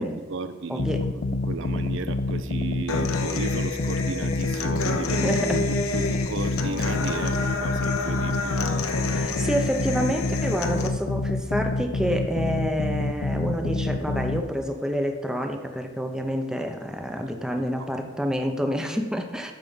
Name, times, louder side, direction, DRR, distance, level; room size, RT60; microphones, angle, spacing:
voice 1, 0.0-8.6 17.2-17.3 17.8-18.1, right 3 dB, 60° right, 10 dB, 0.6 m, -35 dB
voice 2, 0.7-1.1 5.2-5.6 9.0-19.5, equal, 5° right, 4 dB, 0.6 m, -28 dB
sound 1, 0.8-14.4, left 2 dB, 50° left, 0.4 m, -28 dB
Human voice / Acoustic guitar, 2.9-10.9, left 3 dB, 85° left, 0.9 m, -30 dB
13.0 x 4.8 x 5.6 m, 1.4 s
head